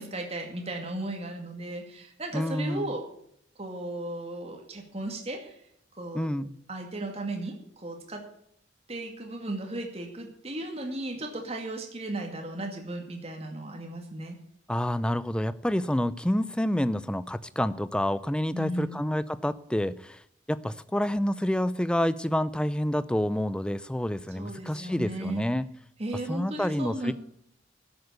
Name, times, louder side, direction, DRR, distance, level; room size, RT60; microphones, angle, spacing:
voice 1, 0.0-3.0 3.6-5.6 6.0-6.3 6.7-8.2 8.9-14.4 18.5-19.0 24.3-25.4 26.0-27.1, right 1 dB, 35° right, 2 dB, 2.2 m, -36 dB
voice 2, 2.3-2.9 6.1-6.5 14.7-20.2 20.5-25.6 26.3-27.1, left 1 dB, 5° left, 16 dB, 0.4 m, -28 dB
12.5 x 7.9 x 8.2 m, 0.69 s
head